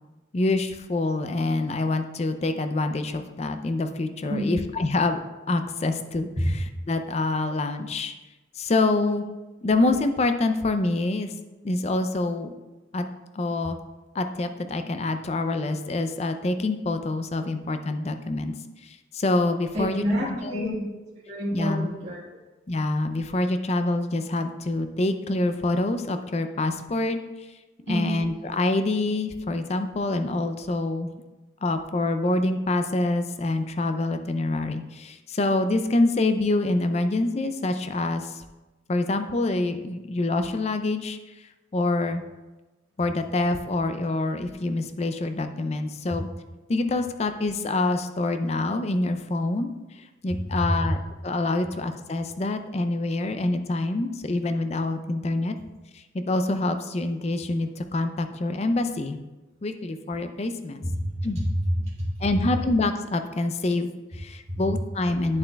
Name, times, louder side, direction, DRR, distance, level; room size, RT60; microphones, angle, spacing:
voice 1, 0.3-5.2 5.5-6.3 6.9-8.1 8.5-9.3 9.6-11.3 11.6-12.5 12.9-13.1 13.3-13.8 14.1-18.5 18.8-20.8 21.5-21.9 22.7-27.2 27.9-31.1 31.6-38.4 38.9-41.2 41.7-42.2 43.0-46.3 46.7-49.7 50.2-55.6 56.1-59.2 59.6-60.8 61.2-61.4 62.2-65.4, left 2 dB, 35° left, 8 dB, 0.4 m, -26 dB
voice 2, 4.3-4.6 6.4-6.5 19.7-20.8 21.2-22.2 27.9-28.2 50.5-50.7 60.8-62.2 64.5-64.6, equal, 35° right, -9 dB, 1.7 m, -28 dB
9.0 x 7.1 x 2.3 m, 1.1 s
head